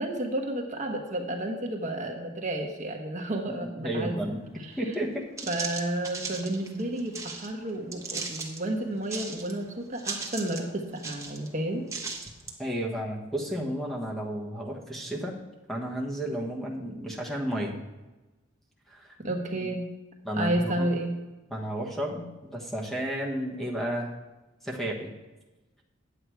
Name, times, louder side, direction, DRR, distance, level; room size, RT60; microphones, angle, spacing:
voice 1, 0.0-4.3 4.7-4.8 5.5-11.8 19.2-19.8 20.4-21.1, right 1 dB, 40° right, 2 dB, 1.2 m, -31 dB
voice 2, 3.8-4.4 4.8-5.3 12.6-15.3 15.7-17.7 18.9-19.1 20.2-20.9 21.5-24.1 24.6-25.1, equal, ahead, -1 dB, 1.3 m, -32 dB
sound 1, 4.9-5.0 5.4-7.5 7.9-8.6 9.0-9.6 9.9-10.7 11.0-11.5 11.9-12.6, right 4 dB, 15° right, 1.1 m, -37 dB
9.7 x 8.2 x 4.6 m, 1.1 s
head